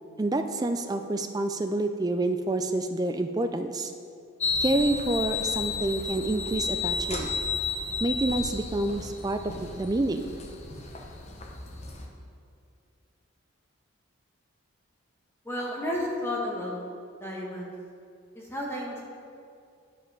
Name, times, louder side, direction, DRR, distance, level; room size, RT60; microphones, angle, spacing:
voice 1, 0.2-3.9 4.6-7.3 8.0-10.3, right 2 dB, 20° right, 7 dB, 0.3 m, -28 dB
sound 1, 4.4-12.1, left 5 dB, 30° left, 0.7 m, -32 dB
voice 2, 15.4-16.9 17.2-17.7 18.3-19.0, left 1 dB, 10° left, -3 dB, 1.2 m, -32 dB
9.6 x 5.1 x 5.3 m, 2.4 s
head